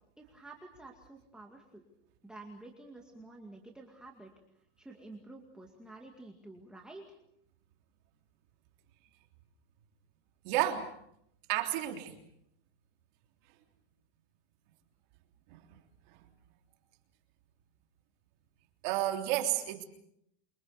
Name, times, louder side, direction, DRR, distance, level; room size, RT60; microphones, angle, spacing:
voice 1, 0.2-1.8 2.2-4.3 4.8-7.1, right 2 dB, 5° right, 0 dB, 2.2 m, -50 dB
voice 2, 10.4-10.9 11.5-12.1 15.5-15.6 16.1-16.2 18.8-19.8, right 13 dB, 50° right, 3 dB, 3.4 m, -31 dB
28.0 x 24.5 x 6.8 m, 0.74 s
supercardioid pair, 170°, 30 cm